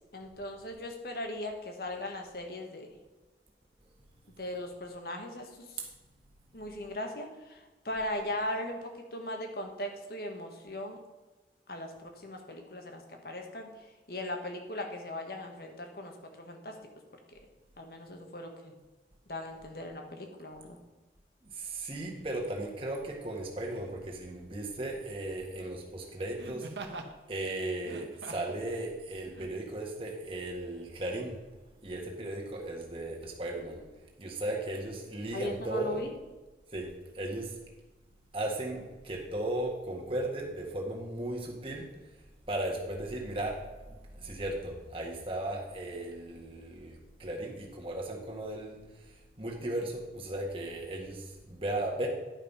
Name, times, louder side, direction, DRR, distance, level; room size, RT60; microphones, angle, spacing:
voice 1, 0.1-2.9 4.4-5.8 6.5-11.0 11.7-16.8 17.3-17.4 17.8-18.7 19.3-20.8 35.3-36.1, left 1 dB, 55° left, 4 dB, 1.4 m, -39 dB
voice 2, 21.6-26.7 27.3-31.3 31.8-33.8 34.2-36.0 36.7-36.9 37.2-37.5 38.3-41.9 42.5-43.5 44.2-48.8 49.4-51.2 51.5-52.1, right 1 dB, 30° right, -1 dB, 1.7 m, -36 dB
Laughter, 22.2-22.3 23.6-24.0 26.4-27.1 27.8-28.6 29.3-29.5, right 2 dB, 80° right, 1.0 m, -44 dB
10.5 x 5.5 x 5.5 m, 1.2 s
head